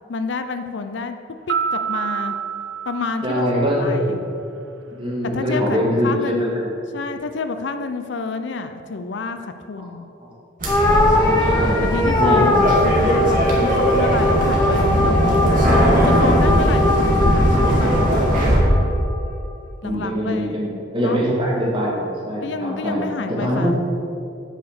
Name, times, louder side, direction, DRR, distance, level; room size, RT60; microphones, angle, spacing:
voice 1, 0.1-1.2 1.5-2.3 2.9-4.2 5.3-6.5 6.9-10.1 11.8-15.5 15.8-18.1 19.8-20.6 21.0-21.2 22.4-23.8, left 4 dB, 65° left, 9 dB, 0.5 m, -29 dB
sound 1, 1.5-4.0, right 7 dB, 75° right, 0.7 m, -27 dB
voice 2, 3.2-4.2 5.0-6.7 9.8-9.9 11.1-11.8 12.2-12.9 13.5-13.8 19.8-23.0 23.4-23.8, equal, 25° right, -5 dB, 2.2 m, -23 dB
sound 2, 10.6-18.6, equal, 45° right, 2.1 m, -19 dB
sound 3, 10.7-19.2, left 1 dB, 15° left, 0.8 m, -21 dB
9.0 x 4.9 x 6.6 m, 2.6 s
head